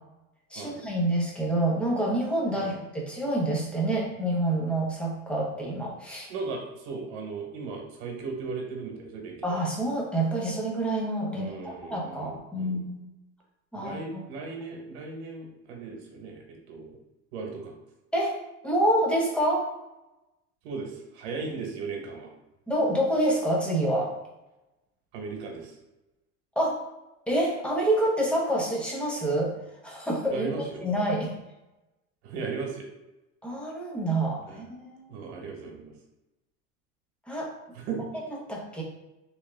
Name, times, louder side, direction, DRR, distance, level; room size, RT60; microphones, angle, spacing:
voice 1, 0.5-6.3 9.4-13.0 13.7-14.2 18.1-18.4 18.6-19.7 22.7-24.1 26.6-26.8 27.3-29.5 29.8-31.3 33.4-35.1 37.3-37.5 38.5-38.8, right 1 dB, 5° left, -3 dB, 0.7 m, -27 dB
voice 2, 6.3-9.3 11.3-12.8 13.8-16.9 17.3-17.7 20.6-22.3 25.1-25.7 30.3-30.9 32.2-32.9 34.5-34.6 35.1-35.9 37.7-38.1, right 4 dB, 85° right, 1 dB, 1.1 m, -37 dB
3.5 x 3.2 x 3.3 m, 0.97 s
cardioid pair, 160°, 32 cm